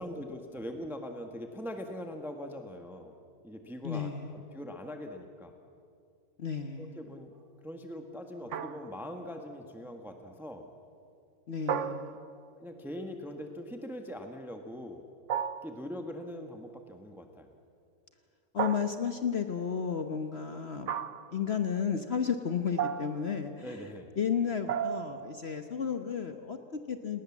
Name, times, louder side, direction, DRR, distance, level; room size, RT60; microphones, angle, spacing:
voice 1, 0.0-3.1 3.4-5.5 6.8-7.3 7.6-10.7 11.7-12.2 12.6-15.0 15.6-17.5 23.6-24.1, equal, ahead, 4 dB, 1.4 m, -42 dB
voice 2, 3.8-4.3 6.4-7.0 11.5-12.3 18.5-20.9 21.3-23.9 24.2-27.2, left 7 dB, 45° left, 7 dB, 1.2 m, -33 dB
sound 1, 8.5-9.2 11.7-12.6 15.3-15.9 18.6-19.3 20.9-21.4 22.8-23.4 24.7-25.3, right 8 dB, 55° right, 1.0 m, -34 dB
29.5 x 19.5 x 7.3 m, 2.4 s
omnidirectional pair, 1.6 m